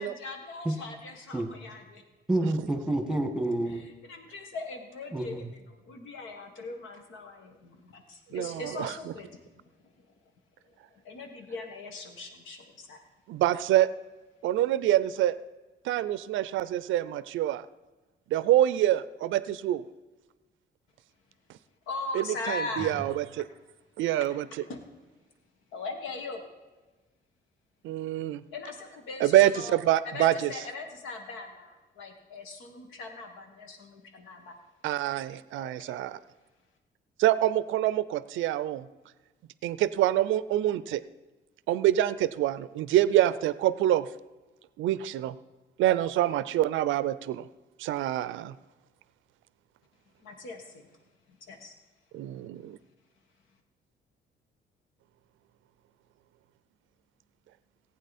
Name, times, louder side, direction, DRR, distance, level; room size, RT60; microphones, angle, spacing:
voice 1, 0.0-2.0 3.7-9.4 10.9-13.0 21.9-22.9 24.7-24.8 25.7-26.5 28.5-29.8 30.0-34.5 35.6-35.7 50.2-50.9 51.5-51.7, left 3 dB, 85° left, 4 dB, 1.7 m, -40 dB
voice 2, 2.3-3.8 5.1-5.4, right 1 dB, 5° right, 7 dB, 1.6 m, -28 dB
voice 3, 8.3-8.9 13.3-13.9 14.4-15.4 15.9-17.7 18.3-19.8 22.1-23.4 24.0-24.5 27.8-28.4 29.2-30.5 34.8-36.2 37.2-38.9 39.6-41.0 41.7-44.0 44.8-45.3 45.8-47.5 47.8-48.5 52.1-52.8, right 13 dB, 75° right, 16 dB, 0.4 m, -26 dB
15.5 x 8.8 x 4.2 m, 1.2 s
cardioid pair, 90°, 20 cm